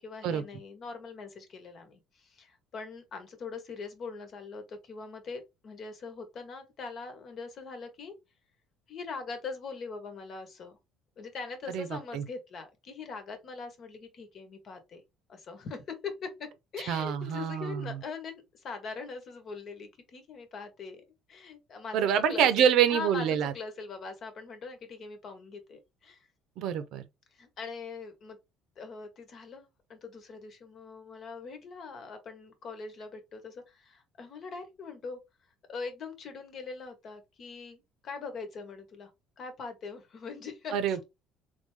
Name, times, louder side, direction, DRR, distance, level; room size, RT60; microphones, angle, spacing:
voice 1, 0.0-8.1 8.9-10.8 11.2-15.0 15.3-16.5 16.7-21.0 21.3-26.3 27.3-28.4 28.8-35.2 35.7-39.1 39.4-41.0, left 4 dB, 45° left, 1.2 m, -42 dB
voice 2, 11.7-12.2 16.9-18.0 21.9-23.5 26.6-27.0 40.7-41.0, right 8 dB, 65° right, 0.8 m, -26 dB
3.7 x 3.4 x 3.3 m
cardioid pair, 135°, 0 cm